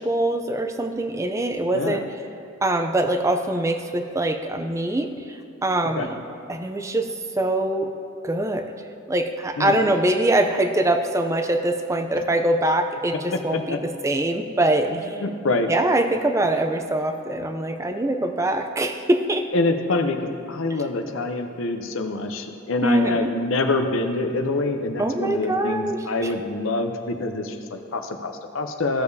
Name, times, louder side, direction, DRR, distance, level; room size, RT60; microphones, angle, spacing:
voice 1, 0.0-2.0 2.6-6.2 6.5-7.1 7.4-7.9 8.2-8.7 9.1-15.2 15.7-19.5 22.8-23.3 25.0-26.0 26.2-26.3, right 1 dB, 15° right, 6 dB, 0.4 m, -23 dB
voice 2, 1.7-2.0 5.9-6.1 9.6-9.8 13.3-13.8 14.9-15.7 19.5-29.0, left 2 dB, 65° left, 6 dB, 0.7 m, -26 dB
16.0 x 6.8 x 2.7 m, 2.5 s
head